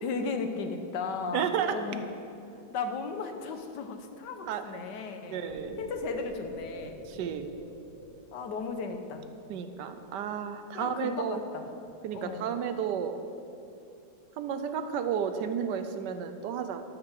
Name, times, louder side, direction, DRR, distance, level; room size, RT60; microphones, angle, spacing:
voice 1, 0.0-2.0 2.7-5.4 5.8-7.0 8.3-9.3 10.7-11.7 12.1-12.5, left 4 dB, 90° left, 6 dB, 1.5 m, -35 dB
voice 2, 1.3-1.8 4.4-4.8 5.2-5.8 7.1-7.5 9.5-11.4 12.0-13.2 14.4-16.8, right 8 dB, 90° right, 9 dB, 1.3 m, -32 dB
sound 1, 5.5-9.7, right 2 dB, 50° right, 1.5 m, -45 dB
12.0 x 6.0 x 6.5 m, 2.7 s
omnidirectional pair, 1.8 m